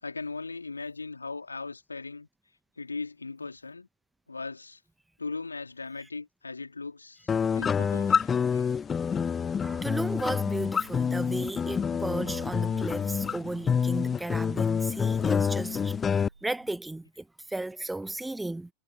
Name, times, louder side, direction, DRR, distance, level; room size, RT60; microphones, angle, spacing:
voice 1, 0.0-2.3 2.8-3.9 4.3-4.8 5.2-8.7, left 3 dB, 80° left, 3.5 m, -38 dB
sound 1, 7.3-16.3, left 6 dB, 20° left, 0.4 m, -27 dB
sound 2, 8.8-16.8, right 4 dB, 80° right, 2.5 m, -51 dB
voice 2, 9.6-18.7, right 2 dB, 5° right, 1.3 m, -35 dB
figure-of-eight pair, 90°, 0 cm